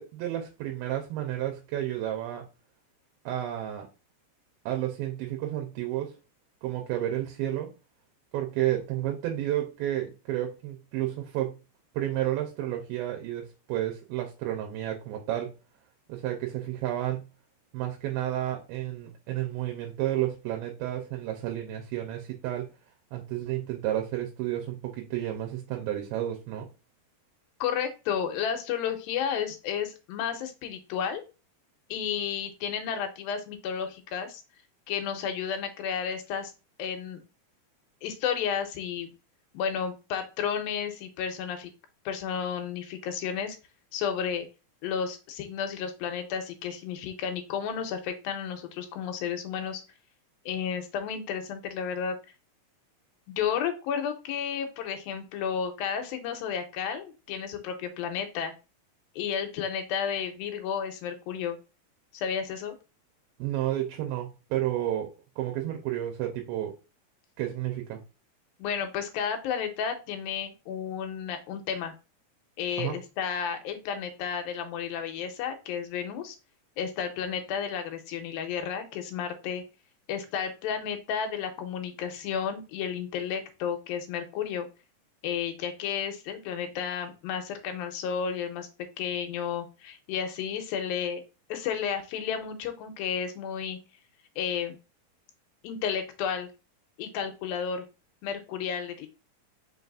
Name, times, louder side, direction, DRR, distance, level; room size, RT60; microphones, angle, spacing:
voice 1, 0.0-2.5 3.3-3.9 4.7-6.1 6.6-7.7 8.3-11.6 11.9-15.5 16.1-17.3 17.7-22.7 23.1-26.7 63.4-66.8 67.4-68.0 72.8-73.0, right 13 dB, 80° right, 2.5 m, -31 dB
voice 2, 27.6-31.2 31.9-34.4 34.9-36.5 36.8-37.2 38.0-39.1 39.5-41.7 42.1-43.6 43.9-44.5 44.8-49.8 50.5-52.2 53.3-58.5 59.2-61.6 62.1-62.7 68.6-71.9 72.6-76.4 76.8-79.6 80.1-84.7 85.2-88.7 89.0-91.2 91.5-93.8 94.4-94.7 95.6-96.5 97.0-97.8 98.2-99.1, left 7 dB, 85° left, 2.4 m, -32 dB
5.3 x 3.9 x 2.4 m
omnidirectional pair, 4.3 m